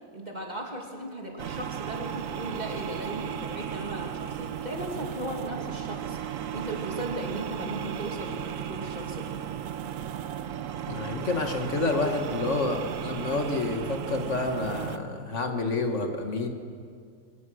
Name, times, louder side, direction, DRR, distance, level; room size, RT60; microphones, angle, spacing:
voice 1, 0.1-9.3, right 1 dB, 30° right, 0 dB, 2.8 m, -37 dB
sound 1, 1.4-15.0, right 9 dB, 75° right, 1.2 m, -35 dB
voice 2, 10.9-16.5, left 3 dB, 60° left, 4 dB, 1.9 m, -29 dB
23.5 x 19.5 x 6.3 m, 2.2 s
omnidirectional pair, 1.4 m